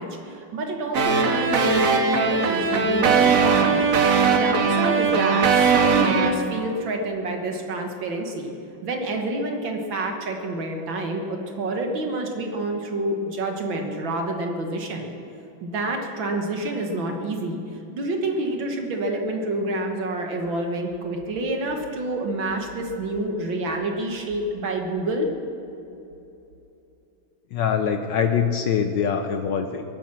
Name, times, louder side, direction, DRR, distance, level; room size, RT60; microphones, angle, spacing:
voice 1, 0.0-3.8 4.2-8.5 8.8-15.1 15.6-17.6 17.9-25.3, right 2 dB, 65° right, 3 dB, 2.0 m, -28 dB
sound 1, 0.9-6.3, right 5 dB, 45° right, 1.3 m, -19 dB
voice 2, 27.5-29.8, left 7 dB, 70° left, 6 dB, 1.3 m, -23 dB
23.0 x 9.2 x 6.0 m, 2.8 s
omnidirectional pair, 2.3 m